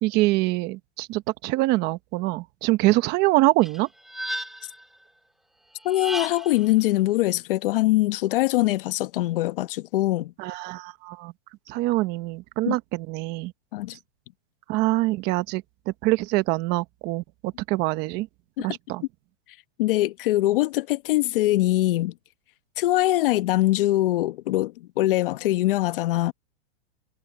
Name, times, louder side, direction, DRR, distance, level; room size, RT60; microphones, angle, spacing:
voice 1, 0.0-3.9 10.4-11.3 11.7-13.5 14.7-15.6 16.0-18.3 18.6-19.0, right 19 dB, 30° right, 1.0 m, -24 dB
sound 1, 3.6-4.8 5.8-6.7, equal, ahead, 2.9 m, -34 dB
voice 2, 5.8-10.3 12.7-12.8 13.7-14.0 18.6-18.7 19.8-22.1 22.8-26.3, left 16 dB, 55° left, 1.1 m, -23 dB
supercardioid pair, 155°, 32 cm